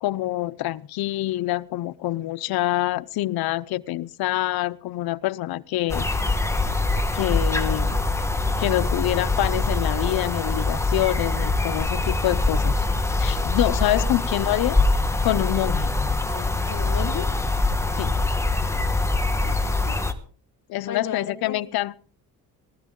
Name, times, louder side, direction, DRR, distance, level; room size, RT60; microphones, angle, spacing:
voice 1, 0.0-6.1 7.1-8.0 8.6-12.8 13.2-14.8 15.2-15.9 18.0-18.1 20.7-22.0, left 16 dB, 75° left, 15 dB, 0.7 m, -26 dB
sound 1, 5.9-20.1, left 2 dB, 5° left, 1.3 m, -24 dB
voice 2, 16.3-17.3 19.4-20.0 20.9-21.6, left 7 dB, 50° left, 2 dB, 2.6 m, -35 dB
19.5 x 13.0 x 3.7 m, 0.43 s
cardioid pair, 115°, 37 cm